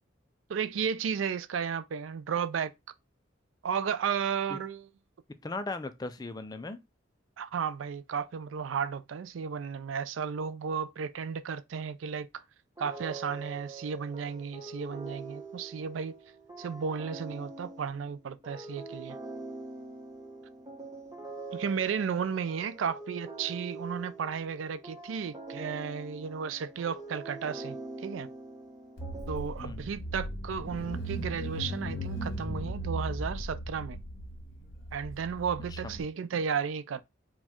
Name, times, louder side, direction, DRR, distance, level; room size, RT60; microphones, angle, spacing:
voice 1, 0.5-2.7 3.6-4.9 7.4-12.3 12.8-16.2 16.6-19.2 21.5-28.3 29.3-34.0 34.9-37.0, right 6 dB, 85° right, 0.4 m, -34 dB
voice 2, 5.4-6.8 29.6-29.8 35.7-36.0, left 3 dB, 20° left, 0.4 m, -38 dB
sound 1, 12.8-29.9, right 3 dB, 20° right, 0.9 m, -44 dB
Car / Engine, 29.0-36.0, right 1 dB, 55° left, 1.4 m, -37 dB
4.5 x 2.3 x 4.3 m
head